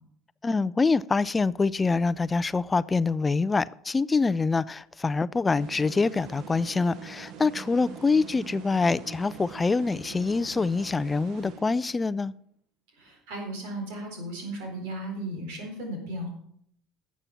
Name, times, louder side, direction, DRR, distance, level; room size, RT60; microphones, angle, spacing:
voice 1, 0.4-12.3, left 4 dB, 20° left, 0.3 m, -25 dB
sound 1, 5.5-12.1, right 7 dB, 65° right, 1.1 m, -44 dB
voice 2, 13.0-16.3, right 1 dB, 85° right, 4.1 m, -35 dB
11.5 x 7.3 x 5.7 m
supercardioid pair, 100°, 0 cm